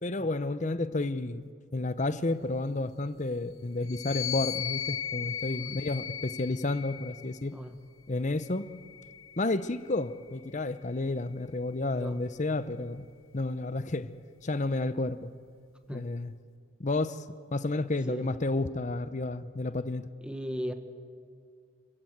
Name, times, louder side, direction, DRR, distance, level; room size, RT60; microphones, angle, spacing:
voice 1, 0.0-7.6 8.1-8.7 9.4-13.0 13.3-14.1 14.4-15.3 15.9-16.3 16.8-17.2 17.5-20.1, left 2 dB, 35° left, 14 dB, 0.7 m, -31 dB
sound 1, 3.8-7.4 8.3-9.9, left 10 dB, 70° left, 0.8 m, -37 dB
voice 2, 5.4-5.8 7.5-7.7 11.9-12.2 15.9-16.1 18.1-18.3 20.2-20.7, equal, 5° right, 7 dB, 1.2 m, -37 dB
27.5 x 15.5 x 7.9 m, 2.2 s
head